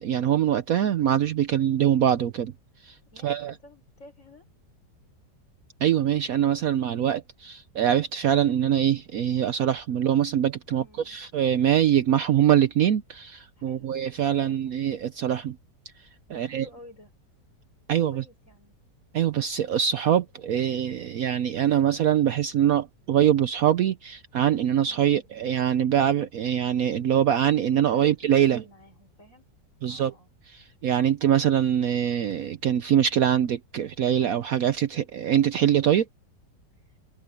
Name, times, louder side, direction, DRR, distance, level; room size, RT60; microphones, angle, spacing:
voice 1, 0.0-2.5 2.8-2.9 3.2-3.5 5.8-15.6 16.3-16.6 17.9-18.2 19.1-28.6 29.8-30.1 30.5-36.0, right 10 dB, 65° right, 1.0 m, -23 dB
voice 2, 3.0-4.4 10.7-11.2 13.6-14.0 14.3-14.7 16.3-17.1 17.9-18.8 24.8-25.3 27.9-29.5 29.8-30.3 36.8-37.0, left 1 dB, 45° left, 6.8 m, -51 dB
omnidirectional pair, 1.9 m